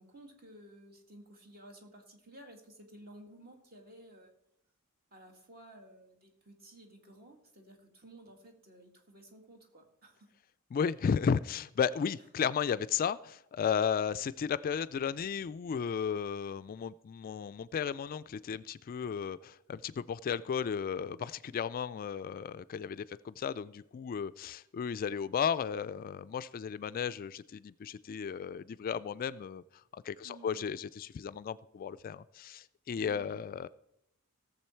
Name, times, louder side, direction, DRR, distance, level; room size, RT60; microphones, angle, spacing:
voice 1, 0.0-4.3 5.1-10.3 30.2-30.6 33.0-33.4, right 1 dB, 45° right, 3 dB, 2.0 m, -54 dB
voice 2, 10.7-33.7, left 7 dB, 40° left, 14 dB, 0.3 m, -34 dB
17.5 x 7.0 x 4.4 m, 0.79 s
head